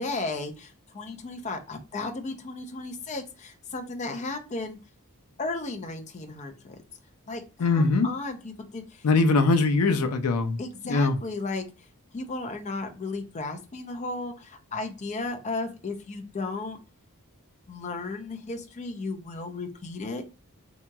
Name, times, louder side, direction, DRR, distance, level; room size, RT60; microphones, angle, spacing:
voice 1, 0.0-4.8 5.4-6.6 7.3-9.0 10.6-11.6 12.1-16.8 17.7-20.2, left 3 dB, 30° left, 0.4 m, -34 dB
voice 2, 7.6-8.1 9.0-10.6 10.9-11.1, left 3 dB, 85° left, 0.5 m, -22 dB
2.8 x 2.8 x 2.2 m
head